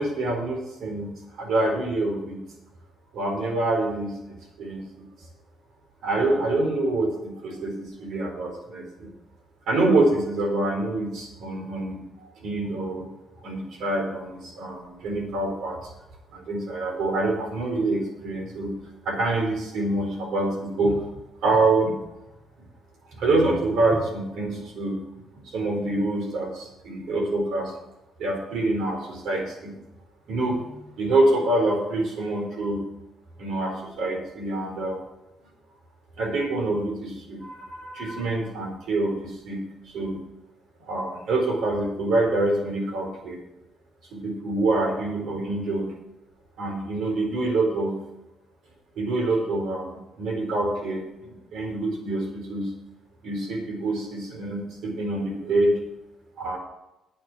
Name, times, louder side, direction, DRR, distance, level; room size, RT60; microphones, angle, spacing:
voice 1, 0.0-2.4 3.1-4.2 4.6-5.1 6.0-9.1 9.7-13.1 13.4-15.8 16.3-18.7 19.0-21.0 21.4-22.0 23.1-25.0 25.4-27.7 28.2-29.7 30.3-32.8 33.4-35.0 36.2-40.2 40.9-43.4 44.1-45.9 46.6-48.0 49.0-52.7 53.2-55.8 56.4-56.6, right 2 dB, 75° right, 1 dB, 4.5 m, -26 dB
10.5 x 9.9 x 6.2 m, 0.94 s
cardioid pair, 90°, 0 cm